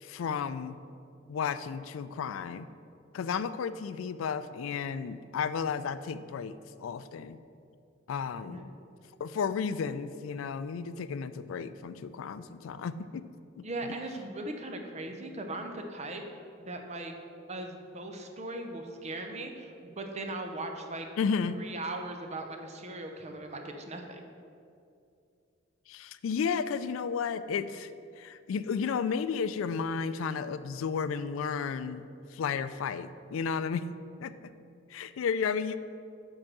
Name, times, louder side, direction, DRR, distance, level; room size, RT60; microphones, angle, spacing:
voice 1, 0.0-0.8 1.3-2.7 3.1-7.4 8.1-8.7 9.2-13.2 13.6-14.0 21.2-21.6 25.9-27.9 28.2-32.1 32.3-33.9 34.2-34.3 34.9-35.8, left 6 dB, 85° left, 13 dB, 0.3 m, -33 dB
voice 2, 13.6-16.2 16.6-17.1 17.5-21.1 21.5-24.2, right 2 dB, 35° right, 4 dB, 0.7 m, -39 dB
7.6 x 4.7 x 6.0 m, 2.5 s
head